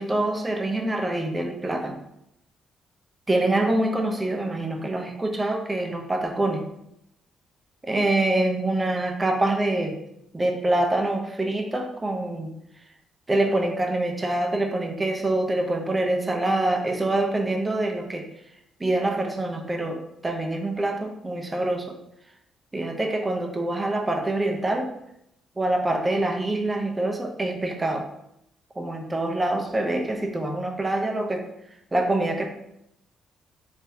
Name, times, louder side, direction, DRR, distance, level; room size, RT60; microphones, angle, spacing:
voice 1, 0.0-2.0 3.3-6.6 7.8-10.0 10.3-12.5 13.3-18.3 18.8-22.0 22.7-24.9 25.6-28.1 28.8-31.4 31.9-32.5, right 2 dB, 20° right, 3 dB, 0.5 m, -25 dB
3.7 x 2.6 x 2.7 m, 0.79 s
cardioid pair, 90°, 0 cm